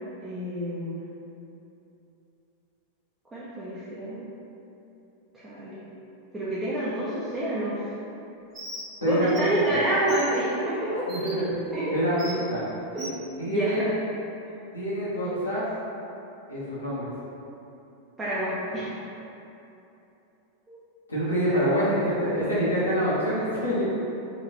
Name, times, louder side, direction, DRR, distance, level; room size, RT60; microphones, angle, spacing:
voice 1, 0.2-1.0 3.3-4.3 5.3-5.8 6.3-7.9 9.0-11.1 11.7-11.8 12.9-13.2 13.4-13.9 18.2-19.0 20.7-20.8 21.5-21.7, right 1 dB, 15° right, -10 dB, 0.8 m, -28 dB
Bird, 8.5-8.9 9.3-9.4 10.1-10.3 11.1-11.3 12.2-12.4 13.0-13.2, right 1 dB, 35° right, 1.2 m, -38 dB
voice 2, 9.0-9.7 11.1-11.4 11.9-12.6 13.4-13.9 14.7-15.6 16.5-17.1 21.1-23.9, equal, 75° left, -9 dB, 1.3 m, -26 dB
4.4 x 2.9 x 3.1 m, 2.9 s
figure-of-eight pair, 90°, 0 cm